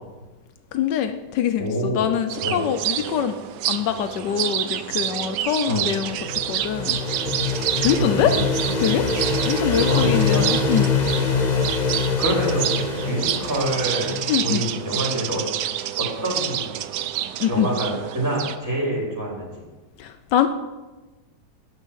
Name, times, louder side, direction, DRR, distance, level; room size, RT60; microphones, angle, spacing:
voice 1, 0.7-3.4 3.7-6.2 6.5-7.0 7.8-8.4 8.8-9.1 9.4-10.9 14.3-14.7 17.4-17.7 20.0-20.5, left 9 dB, 80° left, 9 dB, 1.3 m, -24 dB
voice 2, 1.6-2.0 2.4-2.6 5.7-5.8 8.0-8.4 9.9-10.6 12.2-14.1 14.4-15.4 15.8-16.7 17.5-19.5, right 1 dB, 10° right, -2 dB, 3.7 m, -26 dB
sound 1, 2.3-18.6, right 11 dB, 80° right, 1.3 m, -28 dB
sound 2, 5.8-14.6, left 4 dB, 30° left, 0.9 m, -24 dB
13.5 x 6.2 x 8.8 m, 1.2 s
omnidirectional pair, 1.9 m